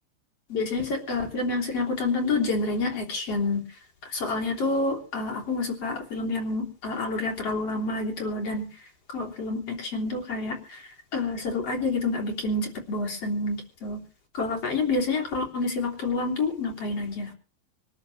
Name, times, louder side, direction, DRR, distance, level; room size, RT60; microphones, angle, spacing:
voice 1, 0.5-3.6 4.0-8.9 9.1-14.0 14.3-17.3, left 3 dB, 35° left, 1 dB, 3.7 m, -28 dB
26.0 x 11.5 x 3.2 m, 0.36 s
omnidirectional pair, 5.4 m